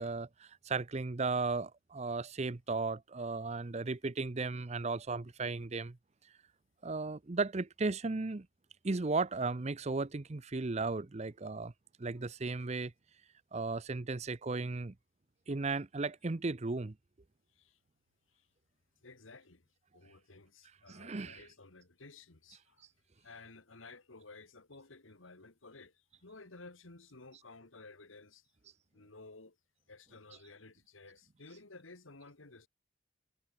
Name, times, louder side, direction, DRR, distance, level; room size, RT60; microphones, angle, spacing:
voice 1, 0.0-6.0 6.8-8.5 8.8-11.7 12.0-12.9 13.5-14.9 15.5-16.9 20.9-21.5, right 3 dB, 35° right, 0.6 m, -35 dB
voice 2, 19.0-19.7 19.9-22.9 23.2-28.5 28.9-29.6 29.9-32.7, left 3 dB, 90° left, 2.2 m, -54 dB
head